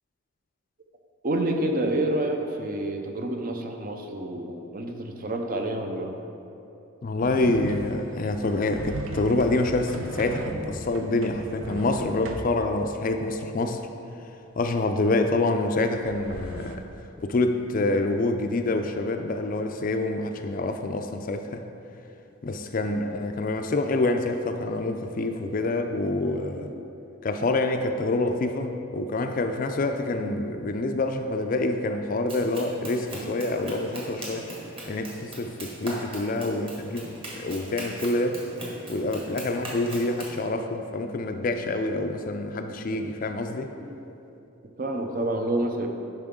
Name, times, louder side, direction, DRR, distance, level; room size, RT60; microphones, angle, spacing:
voice 1, 1.2-6.2 22.8-23.1 25.4-25.7 28.4-28.5 36.5-36.7 43.8-44.1 44.8-45.9, right 1 dB, 40° right, 3 dB, 0.7 m, -29 dB
voice 2, 7.0-13.9 14.6-16.9 17.2-21.6 22.4-26.7 27.2-34.5 34.9-38.5 38.9-43.7, left 2 dB, 40° left, 6 dB, 0.4 m, -27 dB
sound 1, 7.2-12.6 15.9-16.8, right 2 dB, 80° right, 0.6 m, -37 dB
Run, 32.3-40.4, right 1 dB, 25° right, 1.4 m, -40 dB
10.5 x 5.6 x 3.7 m, 2.8 s
head